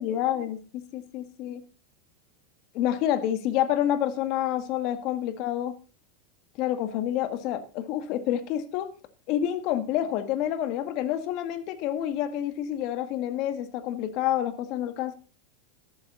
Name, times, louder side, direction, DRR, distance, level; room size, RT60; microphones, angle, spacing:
voice 1, 0.0-1.6 2.7-5.8 6.6-8.9 9.3-15.1, left 11 dB, 55° left, 11 dB, 1.8 m, -28 dB
13.0 x 11.5 x 4.0 m, 0.34 s
supercardioid pair, 115°, 0 cm